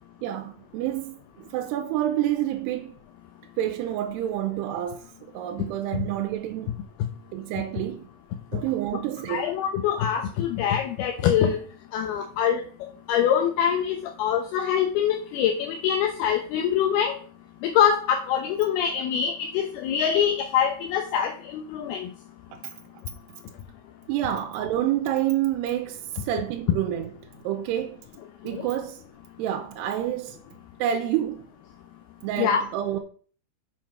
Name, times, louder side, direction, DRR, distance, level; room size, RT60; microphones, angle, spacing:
voice 1, 0.2-2.9 3.6-6.8 7.3-8.1 8.5-9.5 12.2-12.3 22.5-22.7 24.1-27.1 27.4-28.0 28.4-29.0 29.4-30.4 30.8-31.5 32.2-33.0, right 12 dB, 85° right, 2.8 m, -28 dB
voice 2, 9.3-11.6 11.9-12.6 13.1-17.1 17.6-22.1 28.5-28.7 32.4-32.6, left 8 dB, 75° left, 2.7 m, -24 dB
7.1 x 6.1 x 5.9 m
omnidirectional pair, 4.8 m